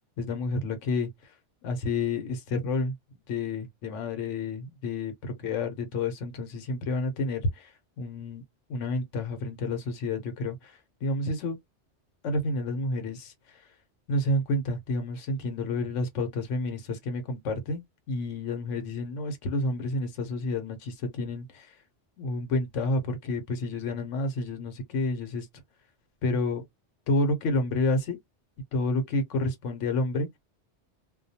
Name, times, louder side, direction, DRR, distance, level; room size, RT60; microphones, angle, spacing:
voice 1, 0.2-1.1 1.6-2.9 3.3-7.7 8.0-8.4 8.7-11.6 12.2-13.6 14.1-17.8 18.1-21.7 22.2-25.5 26.2-26.6 27.1-28.2 28.7-30.3, left 2 dB, 90° left, 1.1 m, -29 dB
2.3 x 2.2 x 2.7 m
omnidirectional pair, 1.2 m